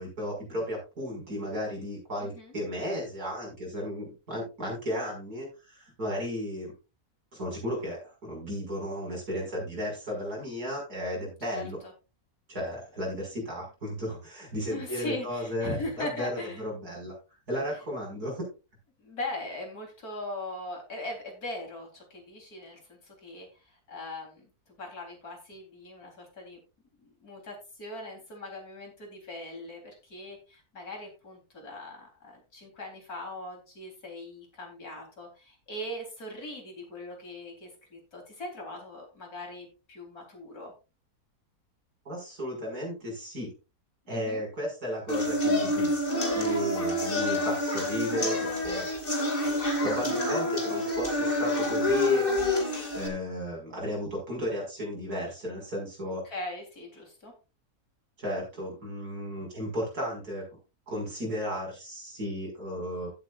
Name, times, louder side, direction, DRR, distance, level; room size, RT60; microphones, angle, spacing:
voice 1, 0.0-6.7 7.3-11.8 12.5-17.1 17.5-18.5 42.0-43.5 44.1-46.0 46.3-48.9 49.8-52.2 52.9-56.2 58.2-60.5 60.9-63.1, equal, 85° right, -1 dB, 6.5 m, -34 dB
voice 2, 2.2-2.5 11.5-11.6 14.7-16.6 19.0-24.5 24.8-26.6 27.0-40.7 44.1-44.4 56.2-57.3, left 2 dB, 75° left, 1 dB, 4.3 m, -40 dB
sound 1, 45.1-53.1, left 1 dB, 35° left, 2.5 m, -27 dB
16.0 x 8.0 x 2.5 m, 0.30 s
omnidirectional pair, 1.6 m